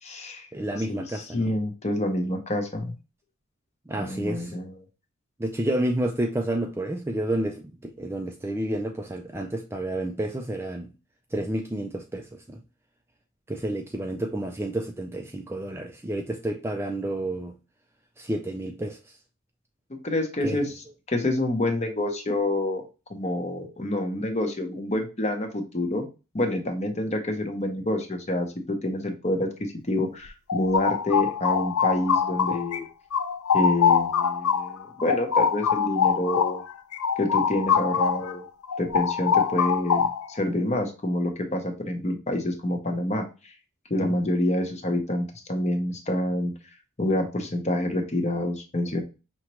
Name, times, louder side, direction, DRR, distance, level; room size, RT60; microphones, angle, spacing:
voice 1, 0.0-0.5 0.8-2.9 4.0-4.7 19.9-20.7 21.1-22.8 23.1-26.1 26.3-29.5 29.9-32.8 33.5-36.6 37.2-38.4 38.8-43.5 43.9-46.5 47.0-49.0, left 1 dB, 30° left, 0.8 m, -27 dB
voice 2, 0.5-1.5 3.9-4.5 5.4-10.9 11.3-12.6 13.5-17.5 18.2-19.0 20.4-20.6 44.0-44.1, right 1 dB, 10° right, 0.3 m, -30 dB
sound 1, 30.3-32.8 33.1-38.3 38.6-40.4, left 7 dB, 75° left, 0.5 m, -24 dB
5.6 x 2.9 x 3.0 m
head